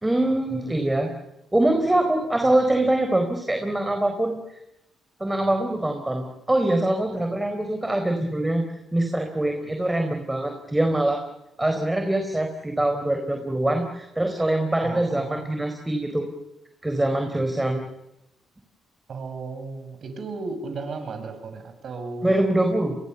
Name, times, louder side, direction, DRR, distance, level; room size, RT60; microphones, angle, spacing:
voice 1, 0.0-1.1 1.5-4.4 5.2-8.6 8.9-11.2 11.6-16.3 16.8-17.8 22.2-23.0, right 1 dB, 10° right, 5 dB, 4.3 m, -23 dB
voice 2, 14.8-15.5 19.1-22.4, right 3 dB, 55° right, 7 dB, 7.8 m, -34 dB
30.0 x 23.0 x 7.1 m, 0.89 s
cardioid pair, 90°, 0 cm